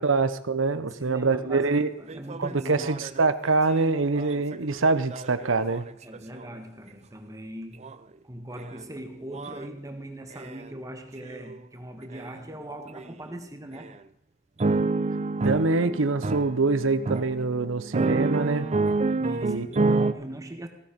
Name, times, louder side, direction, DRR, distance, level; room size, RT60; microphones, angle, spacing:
voice 1, 0.0-1.9 2.4-5.9 15.4-18.7 19.4-19.7, right 3 dB, 85° right, 0.8 m, -25 dB
voice 2, 0.7-3.1 6.0-7.9 8.2-13.9 14.7-14.8 19.2-20.7, right 1 dB, 15° right, 1.6 m, -40 dB
sound 1, 1.6-1.7 2.1-6.4 7.8-7.9 8.6-8.8 9.3-9.7 10.3-10.7 11.3-11.6 12.1-12.3 12.9-13.1 13.7-13.9 14.6-20.1, right 3 dB, 35° right, 0.5 m, -29 dB
16.0 x 9.5 x 5.2 m
head